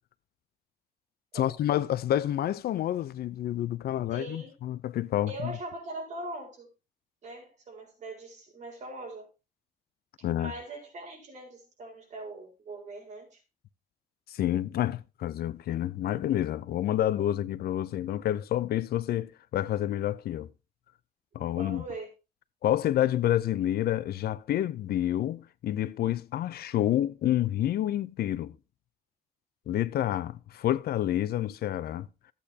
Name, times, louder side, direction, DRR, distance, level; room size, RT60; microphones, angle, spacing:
voice 1, 1.3-5.6 10.2-10.5 14.3-20.5 21.3-21.8 22.6-28.6 29.7-32.1, left 12 dB, 75° left, 0.6 m, -29 dB
voice 2, 4.1-4.5 5.3-6.7 7.2-9.3 10.4-13.4 21.4-22.1, right 2 dB, 45° right, 4.5 m, -41 dB
14.0 x 8.5 x 2.8 m
wide cardioid pair, 165°, 16 cm